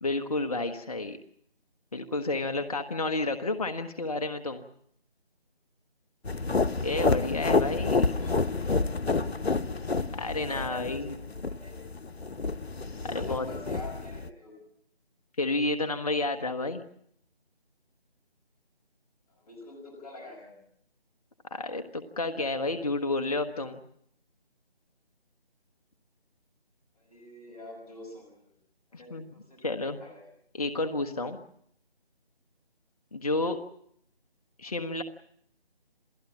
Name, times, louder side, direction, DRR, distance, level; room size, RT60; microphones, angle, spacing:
voice 1, 0.0-1.2 1.9-4.6 6.8-8.2 10.1-11.1 13.0-13.5 15.4-16.8 21.5-23.8 29.1-29.3 29.6-30.0 30.6-31.4 33.1-33.6 34.6-35.0, left 2 dB, 35° left, 6 dB, 1.2 m, -30 dB
sound 1, 6.2-14.3, left 3 dB, 80° left, 1.0 m, -29 dB
voice 2, 8.1-9.1 10.3-11.8 13.1-14.6 19.3-20.6 27.0-28.6 28.9-29.6 30.0-30.3, left 1 dB, 10° left, -2 dB, 5.7 m, -47 dB
28.5 x 17.0 x 7.3 m, 0.69 s
figure-of-eight pair, 160°, 31 cm